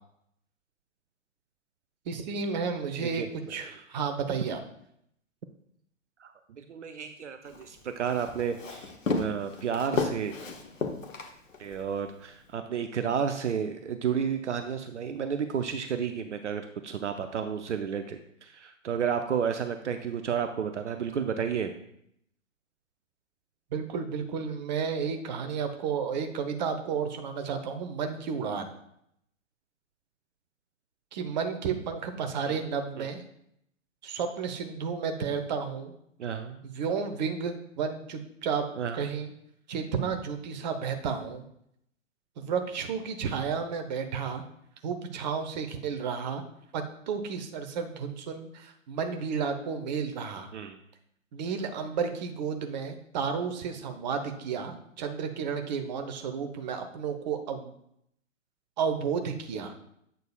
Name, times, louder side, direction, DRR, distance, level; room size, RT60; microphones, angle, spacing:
voice 1, 2.1-3.2 3.5-4.6 23.7-28.7 31.1-33.2 34.0-35.9 36.6-38.7 38.9-39.3 39.7-41.5 42.4-44.4 44.8-46.4 46.7-50.5 51.3-57.7 58.8-59.7, right 6 dB, 35° right, 6 dB, 0.8 m, -32 dB
voice 2, 6.2-10.3 11.6-21.7 32.5-32.6 33.0-33.1 36.2-36.6 38.8-39.0 50.5-50.8, right 7 dB, 65° right, 8 dB, 0.6 m, -32 dB
Walk footsteps, 7.5-11.8, left 4 dB, 80° left, 1.1 m, -33 dB
8.3 x 6.5 x 2.3 m, 0.73 s
figure-of-eight pair, 120°, 39 cm